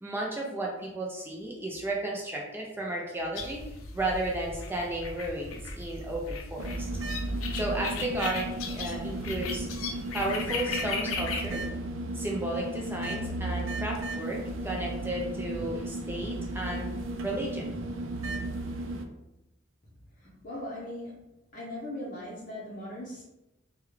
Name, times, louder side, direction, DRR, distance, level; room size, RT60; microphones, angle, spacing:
voice 1, 0.0-3.6 3.9-6.9 7.5-9.7 10.1-11.6 12.1-16.9 17.2-17.7, right 1 dB, 10° right, -2 dB, 0.4 m, -33 dB
sound 1, 3.4-11.7, left 4 dB, 85° left, 0.5 m, -37 dB
sound 2, 6.6-19.1, right 2 dB, 75° right, 0.4 m, -35 dB
voice 2, 20.2-21.2 21.5-23.2, left 1 dB, 40° left, -6 dB, 0.7 m, -39 dB
3.5 x 2.2 x 3.2 m, 0.94 s
head